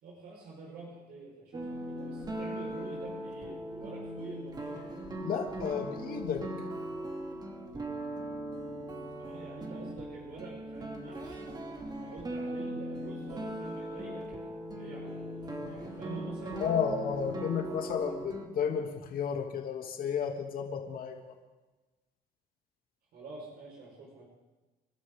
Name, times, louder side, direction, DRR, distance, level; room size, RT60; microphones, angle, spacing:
voice 1, 0.0-4.9 9.2-11.5 12.0-16.7 23.1-24.2, right 3 dB, 70° right, -2 dB, 5.1 m, -47 dB
sound 1, 1.5-18.5, right 1 dB, 25° right, 2.7 m, -39 dB
voice 2, 5.2-6.4 16.6-21.1, left 7 dB, 60° left, 2 dB, 2.8 m, -32 dB
29.5 x 12.5 x 3.8 m, 1.2 s
cardioid pair, 110°, 17 cm